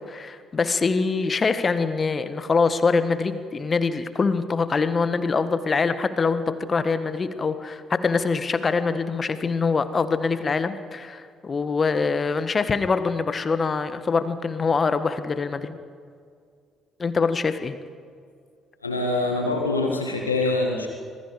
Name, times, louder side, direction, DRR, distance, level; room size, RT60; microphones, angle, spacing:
voice 1, 0.1-6.4 6.7-15.8 17.0-17.8, left 4 dB, 35° left, 12 dB, 1.5 m, -24 dB
voice 2, 18.8-20.9, left 2 dB, 85° left, 1 dB, 1.8 m, -24 dB
26.5 x 19.5 x 5.0 m, 2.2 s
figure-of-eight pair, 45°, 0 cm